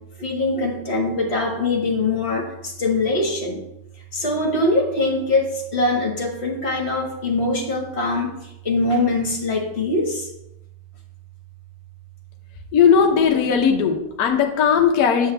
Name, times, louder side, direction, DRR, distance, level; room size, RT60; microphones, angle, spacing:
voice 1, 0.2-3.6 4.1-8.4 8.7-10.2, left 2 dB, 35° left, 0 dB, 1.9 m, -22 dB
voice 2, 12.7-15.3, left 7 dB, 60° left, 3 dB, 1.2 m, -17 dB
8.6 x 7.8 x 3.3 m, 0.85 s
omnidirectional pair, 2.0 m